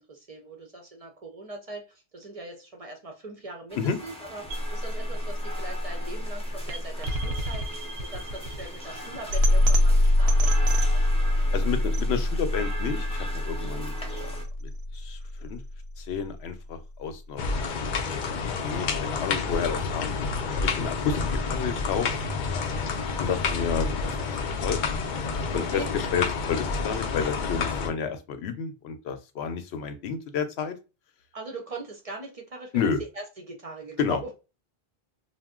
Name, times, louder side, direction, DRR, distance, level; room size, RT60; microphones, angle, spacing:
voice 1, 0.0-11.0 11.5-11.7 13.6-13.8 22.8-23.0 25.5-25.9 31.3-34.2, right 2 dB, 45° right, 3 dB, 0.5 m, -41 dB
sound 1, 3.7-14.4, right 1 dB, 5° left, 0.5 m, -41 dB
sound 2, 4.5-16.5, left 1 dB, 85° right, 0.8 m, -25 dB
voice 2, 11.5-14.3 14.9-15.6 16.0-17.5 18.1-20.1 20.6-21.2 21.5-22.1 23.2-24.8 25.3-30.7 32.7-33.0 34.0-34.2, left 6 dB, 85° left, 9 dB, 0.8 m, -30 dB
sound 3, 17.4-27.9, left 4 dB, 60° left, 0.6 m, -29 dB
2.5 x 2.1 x 3.5 m, 0.30 s
omnidirectional pair, 1.0 m